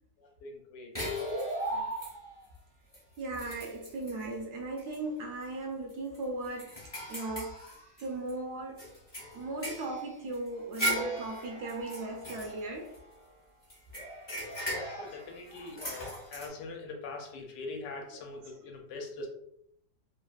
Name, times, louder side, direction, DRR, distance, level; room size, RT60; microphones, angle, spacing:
voice 1, 0.2-1.3 1.7-1.9 14.8-19.3, left 3 dB, 80° left, 1.2 m, -43 dB
sound 1, 0.9-2.4 2.9-3.0 3.3-4.2 4.8-5.0 5.3-5.4 5.9-8.3 8.8-13.2 13.7-16.5, right 1 dB, 30° left, 0.5 m, -37 dB
voice 2, 3.2-6.8 7.1-7.7 8.0-8.8 9.3-12.9, right 2 dB, 70° right, 1.0 m, -37 dB
3.2 x 2.4 x 2.3 m
omnidirectional pair, 1.9 m